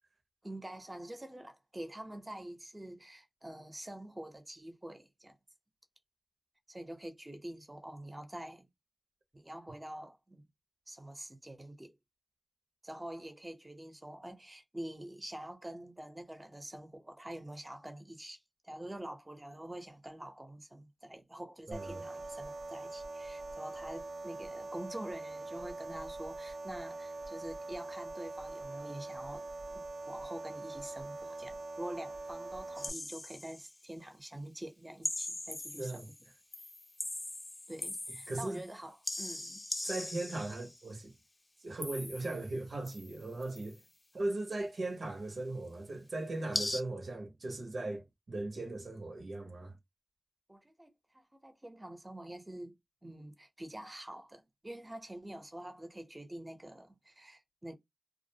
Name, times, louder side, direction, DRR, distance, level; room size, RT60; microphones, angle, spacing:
voice 1, 0.4-5.4 6.7-8.7 9.3-10.4 10.9-11.9 12.8-29.5 29.7-36.0 37.7-39.6 50.5-52.8 53.0-57.8, right 1 dB, 25° right, 0.7 m, -46 dB
sound 1, 21.7-32.9, right 2 dB, 65° right, 0.3 m, -43 dB
voice 2, 21.7-22.0 35.8-36.1 38.3-38.6 39.8-41.1 41.6-43.8 44.1-49.8, right 2 dB, 90° right, 0.7 m, -38 dB
sound 2, 32.8-33.7 35.0-36.2 36.5-38.7 39.0-40.8 41.8-42.5 42.9-43.7 46.5-46.8, left 2 dB, 35° left, 0.6 m, -40 dB
2.4 x 2.0 x 2.6 m
wide cardioid pair, 55°, 0 cm